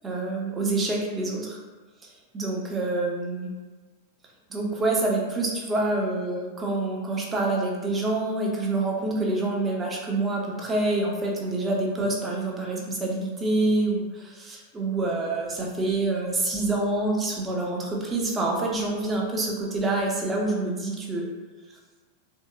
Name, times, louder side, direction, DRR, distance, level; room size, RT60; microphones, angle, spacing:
voice 1, 0.0-1.6 2.3-3.5 4.5-21.3, right 2 dB, 15° right, -1 dB, 0.6 m, -27 dB
3.4 x 2.7 x 2.3 m, 1.3 s
figure-of-eight pair, 90°, 0 cm